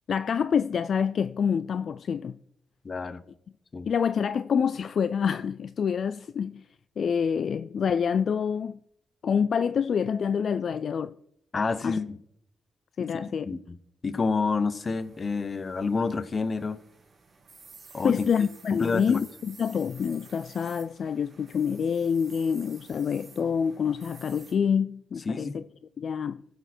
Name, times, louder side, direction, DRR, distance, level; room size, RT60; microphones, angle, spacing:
voice 1, 0.1-2.4 3.9-6.6 7.0-8.8 9.2-11.1 11.8-12.0 13.0-13.5 18.0-25.6 26.0-26.4, left 7 dB, 65° left, 0.3 m, -27 dB
voice 2, 2.8-3.2 3.7-3.9 11.5-12.2 13.2-13.8 14.0-16.8 17.9-18.2 18.8-19.2 25.3-25.6, left 4 dB, 40° left, 0.9 m, -28 dB
sound 1, 14.8-24.5, right 4 dB, 45° right, 2.1 m, -53 dB
15.0 x 6.9 x 4.4 m
cardioid pair, 75°, 0 cm